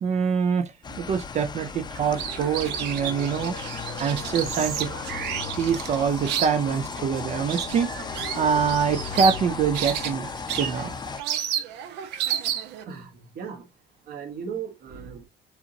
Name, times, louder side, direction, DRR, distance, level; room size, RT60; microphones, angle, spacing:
voice 1, 0.0-4.9 5.6-10.3 10.6-10.9, right 6 dB, 40° right, 0.4 m, -25 dB
sound 1, 0.8-11.2, left 5 dB, 25° left, 0.6 m, -36 dB
sound 2, 1.9-12.8, right 10 dB, 85° right, 0.8 m, -32 dB
Singing, 3.1-10.5, left 8 dB, 70° left, 1.1 m, -42 dB
voice 2, 12.9-13.7 14.1-15.2, right 7 dB, 65° right, 1.2 m, -37 dB
7.1 x 2.8 x 2.7 m
cardioid pair, 110°, 17 cm